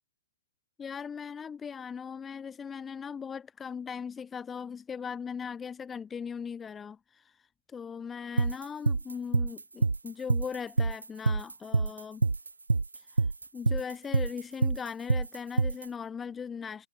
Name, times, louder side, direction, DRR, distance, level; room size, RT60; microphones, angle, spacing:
voice 1, 0.8-7.4 7.7-12.3 13.1-13.2 13.5-16.9, left 6 dB, 10° left, 3.1 m, -39 dB
sound 1, 8.4-15.9, right 3 dB, 90° right, 3.1 m, -26 dB
hypercardioid pair, 145°, 0 cm